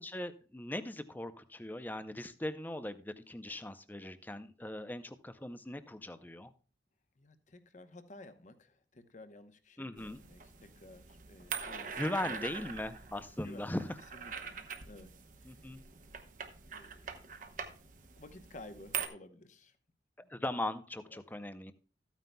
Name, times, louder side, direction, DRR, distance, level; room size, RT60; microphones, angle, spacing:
voice 1, 0.0-6.5 9.8-10.2 12.0-14.0 15.4-15.8 20.3-21.7, left 1 dB, 10° left, 12 dB, 0.5 m, -39 dB
voice 2, 7.2-12.4 13.4-13.7 14.1-14.6 14.9-15.1 15.4-15.6 16.7-17.5 18.2-19.8 20.2-20.4 21.1-21.4, left 2 dB, 40° left, 9 dB, 0.9 m, -54 dB
sound 1, 10.0-19.1, right 6 dB, 45° right, 0.9 m, -44 dB
13.5 x 9.2 x 2.2 m, 0.39 s
head